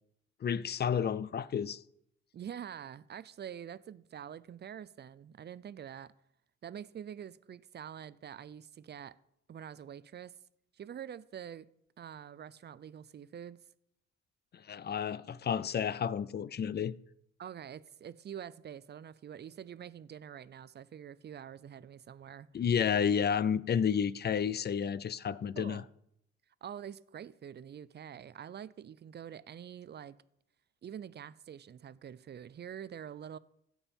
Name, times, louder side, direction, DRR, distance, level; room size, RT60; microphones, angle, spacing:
voice 1, 0.4-1.8 14.5-17.0 22.5-25.8, left 7 dB, 35° left, 0.4 m, -31 dB
voice 2, 2.3-6.1 6.6-9.2 9.5-10.4 10.7-11.7 12.0-13.6 17.4-22.5 25.6-25.9 26.6-30.2 30.8-33.4, right 9 dB, 35° right, 0.4 m, -46 dB
15.5 x 5.5 x 4.3 m
cardioid pair, 90°, 30 cm